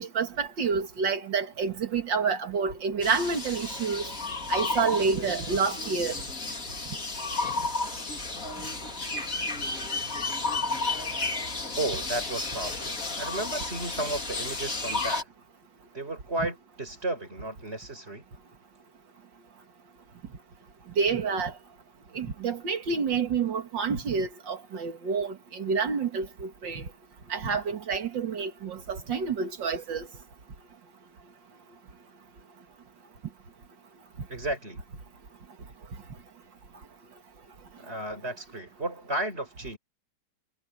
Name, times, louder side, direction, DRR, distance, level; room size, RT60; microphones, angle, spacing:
voice 1, 0.0-4.1 4.5-6.1 21.0-21.5 22.1-26.8 27.3-30.1, right 5 dB, 85° right, 2.6 m, -28 dB
sound 1, 3.0-15.2, left 3 dB, 50° left, 3.6 m, -32 dB
voice 2, 11.8-15.3 15.9-18.2 34.3-34.8 37.8-39.8, right 2 dB, 35° right, 5.6 m, -33 dB
omnidirectional pair, 1.9 m